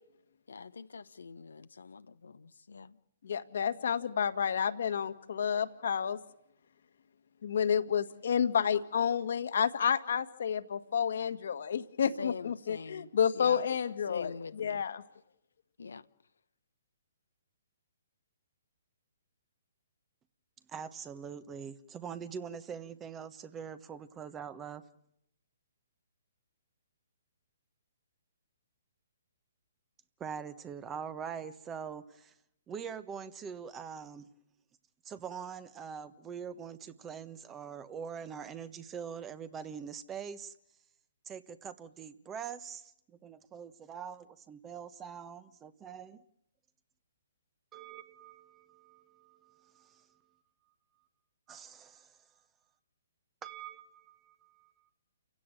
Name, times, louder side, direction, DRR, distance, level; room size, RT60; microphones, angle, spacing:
voice 1, 0.5-3.0 12.2-13.6 14.1-14.8 15.8-16.1, left 5 dB, 80° left, 1.0 m, -44 dB
voice 2, 3.2-6.2 7.4-15.0, left 7 dB, 65° left, 1.7 m, -30 dB
voice 3, 20.7-24.8 30.2-32.3 32.7-34.3 35.0-40.5 41.2-46.2 47.7-50.2 51.5-52.2 53.4-54.9, right 7 dB, 15° right, 1.2 m, -43 dB
29.0 x 16.5 x 9.0 m
hypercardioid pair, 135°, 0 cm